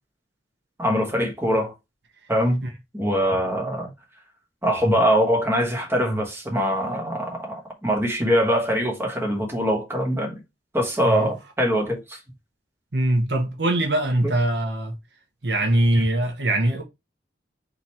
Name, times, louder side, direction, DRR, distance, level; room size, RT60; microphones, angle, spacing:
voice 1, 0.8-1.7 2.3-2.6 2.9-3.9 4.6-10.4 10.7-12.2 14.2-14.3 15.9-16.0, equal, 15° right, 1.3 m, -23 dB
voice 2, 12.9-15.0 15.4-16.8, right 1 dB, 75° right, 1.1 m, -22 dB
3.9 x 3.1 x 4.3 m
head